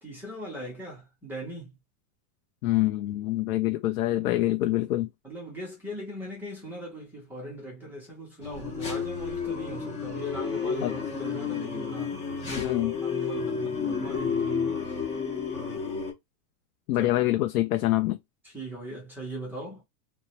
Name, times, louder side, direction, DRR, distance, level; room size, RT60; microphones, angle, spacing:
voice 1, 0.0-1.7 5.2-12.2 13.0-14.9 17.0-17.1 18.4-19.8, right 1 dB, 5° right, 0.5 m, -39 dB
voice 2, 2.6-5.1 10.8-10.9 12.6-13.0 16.9-18.2, left 16 dB, 85° left, 0.5 m, -25 dB
sound 1, 8.4-16.1, left 6 dB, 25° left, 0.8 m, -31 dB
3.0 x 2.0 x 2.8 m
supercardioid pair, 165°, 44 cm